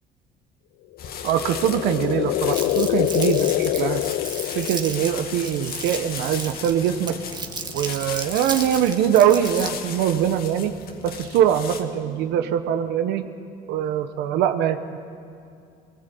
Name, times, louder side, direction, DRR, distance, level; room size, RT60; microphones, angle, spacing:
sound 1, 1.0-5.3, left 16 dB, 80° left, 0.4 m, -25 dB
sound 2, 1.0-11.8, left 7 dB, 65° left, 1.8 m, -37 dB
voice 1, 1.2-4.0 4.5-7.2 7.7-10.7 11.0-13.2 13.7-15.0, right 10 dB, 90° right, 8 dB, 1.0 m, -22 dB
Crumpling crinkling, 2.5-9.9, right 4 dB, 25° right, 1.8 m, -34 dB
20.5 x 18.5 x 8.3 m, 2.5 s
cardioid pair, 110°, 17 cm